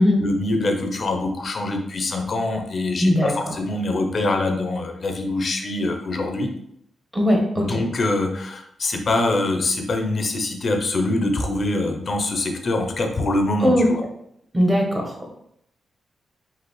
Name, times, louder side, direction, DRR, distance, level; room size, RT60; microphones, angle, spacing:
voice 1, 0.2-6.5 7.6-14.0, left 2 dB, 45° left, 4 dB, 0.7 m, -24 dB
voice 2, 3.0-3.5 7.1-7.7 13.6-13.8 14.5-15.3, equal, 15° right, 0 dB, 1.2 m, -19 dB
4.9 x 2.8 x 3.2 m, 0.72 s
cardioid pair, 90°, 0 cm